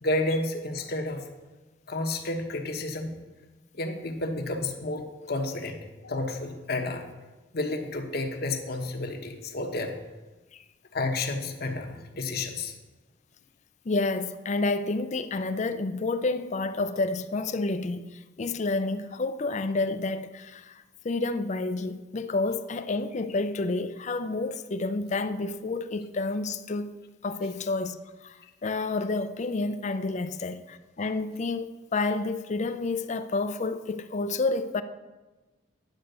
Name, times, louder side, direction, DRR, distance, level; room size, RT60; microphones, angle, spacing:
voice 1, 0.0-1.3 1.9-3.1 3.7-7.1 7.5-9.9 10.9-12.7, left 2 dB, 55° left, 1.1 m, -31 dB
voice 2, 13.9-27.0 27.2-28.0 28.2-34.8, left 3 dB, 40° left, 0.5 m, -29 dB
10.5 x 5.2 x 6.7 m
head